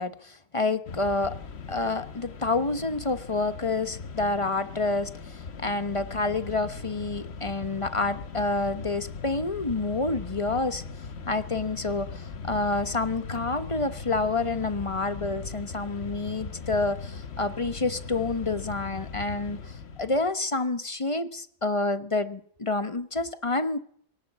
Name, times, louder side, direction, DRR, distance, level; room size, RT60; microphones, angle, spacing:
voice 1, 0.0-1.4 1.7-10.8 11.3-23.8, left 3 dB, 25° left, 11 dB, 1.0 m, -28 dB
Mechanisms, 0.9-20.3, left 5 dB, 55° left, 1.3 m, -39 dB
23.0 x 18.0 x 7.4 m, 0.64 s
omnidirectional pair, 1.4 m